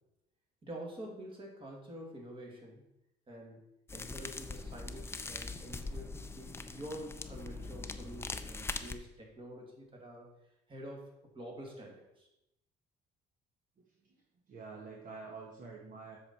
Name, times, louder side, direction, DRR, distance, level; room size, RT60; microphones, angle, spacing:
voice 1, 0.6-2.8 3.3-3.6 3.9-10.3 10.7-11.0 11.3-12.3, right 1 dB, 30° right, 0 dB, 2.4 m, -47 dB
sound 1, 3.9-8.9, left 3 dB, 15° left, 0.5 m, -42 dB
voice 2, 13.8-14.2 14.5-16.2, right 4 dB, 50° right, -1 dB, 1.3 m, -48 dB
7.8 x 6.4 x 4.3 m, 0.88 s
cardioid pair, 110°, 17 cm